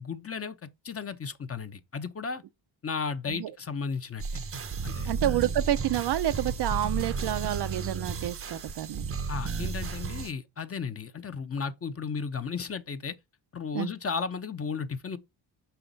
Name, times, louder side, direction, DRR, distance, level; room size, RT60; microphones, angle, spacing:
voice 1, 0.0-2.4 2.8-4.2 4.8-5.1 9.3-13.2 13.5-15.2, left 5 dB, 30° left, 0.8 m, -34 dB
sound 1, 4.2-10.3, right 5 dB, 30° right, 0.7 m, -33 dB
voice 2, 5.1-9.1 13.7-13.9, right 12 dB, 65° right, 0.7 m, -29 dB
6.0 x 5.8 x 4.0 m
cardioid pair, 95°, 43 cm